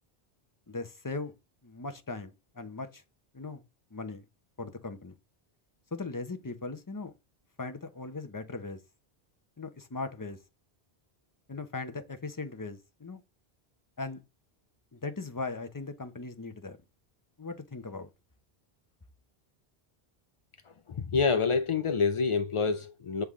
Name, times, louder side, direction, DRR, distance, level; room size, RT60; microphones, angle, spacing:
voice 1, 0.7-1.3 1.6-3.0 3.3-3.6 3.9-4.2 4.6-5.1 5.9-7.1 7.6-8.8 9.6-10.4 11.5-13.2 14.0-14.2 14.9-16.8 17.4-18.1, left 3 dB, 20° left, 0.7 m, -38 dB
voice 2, 20.9-23.2, left 5 dB, 55° left, 0.3 m, -27 dB
8.0 x 3.5 x 3.6 m
omnidirectional pair, 1.1 m